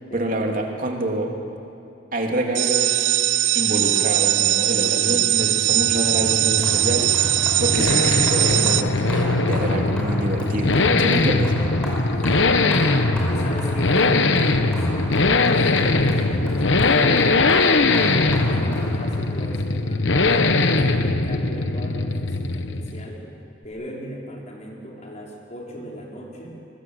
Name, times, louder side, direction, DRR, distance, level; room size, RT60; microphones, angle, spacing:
voice 1, 0.1-1.4 2.1-3.1 3.5-7.1 7.6-11.5, right 1 dB, 45° right, 1 dB, 3.1 m, -26 dB
sound 1, 2.5-8.8, right 14 dB, 80° right, 0.7 m, -20 dB
sound 2, 5.1-23.2, left 3 dB, 75° left, 1.2 m, -21 dB
sound 3, 6.6-19.6, equal, 5° left, 5.2 m, -36 dB
voice 2, 13.3-23.2 23.6-26.5, equal, 40° left, -2 dB, 4.8 m, -36 dB
25.5 x 21.5 x 8.0 m, 2.5 s
head